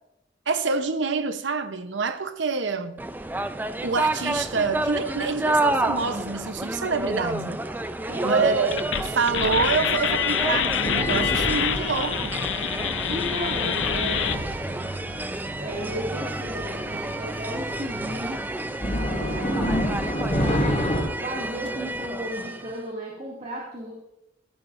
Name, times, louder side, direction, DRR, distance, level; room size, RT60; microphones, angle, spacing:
voice 1, 0.5-3.0 3.8-7.6 8.2-12.4, right 4 dB, 85° right, 0.9 m, -26 dB
sound 1, 3.0-22.8, right 1 dB, 10° right, 0.4 m, -30 dB
voice 2, 8.1-8.5 13.1-14.3 15.6-18.4 19.0-19.9 21.2-23.9, right 1 dB, 40° right, 2.3 m, -34 dB
sound 2, 8.7-14.4, left 8 dB, 85° left, 0.6 m, -26 dB
sound 3, 10.1-21.0, equal, 40° left, 4.1 m, -30 dB
15.0 x 14.0 x 2.6 m
head